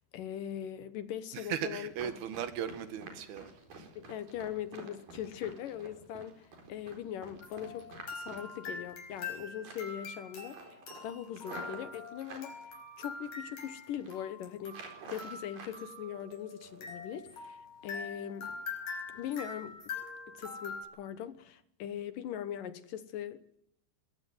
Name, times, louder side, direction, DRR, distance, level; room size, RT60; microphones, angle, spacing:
voice 1, 0.0-2.1 4.0-10.7 11.0-12.5 13.0-14.8 15.1-18.5 19.1-19.8 20.3-23.6, left 10 dB, 70° left, 13 dB, 2.5 m, -41 dB
voice 2, 1.3-3.9, right 9 dB, 80° right, 11 dB, 3.5 m, -38 dB
Run, 1.9-9.3 9.6-10.0 10.4-12.5 13.1-13.6 13.9-14.2 14.7-15.8 16.1-16.9 17.3-17.4 17.8-18.2 18.5-18.6 19.1-19.2 19.6-19.7, right 3 dB, 60° right, 6.0 m, -50 dB
sound 1, 7.4-20.8, left 4 dB, 50° left, 6.1 m, -44 dB
22.0 x 17.5 x 9.5 m, 0.77 s
omnidirectional pair, 4.5 m